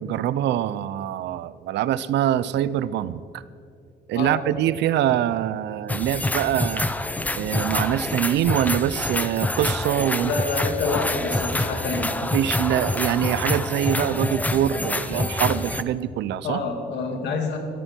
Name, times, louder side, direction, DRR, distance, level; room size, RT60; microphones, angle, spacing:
voice 1, 0.0-3.4 4.1-6.9 7.3-10.3 12.2-16.6, right 11 dB, 85° right, 17 dB, 0.6 m, -24 dB
sound 1, 5.9-15.8, left 2 dB, 10° left, 0.6 m, -26 dB
voice 2, 10.2-12.2 16.4-17.6, left 4 dB, 85° left, 4 dB, 2.5 m, -27 dB
22.5 x 14.0 x 4.5 m, 2.5 s
cardioid pair, 135°, 18 cm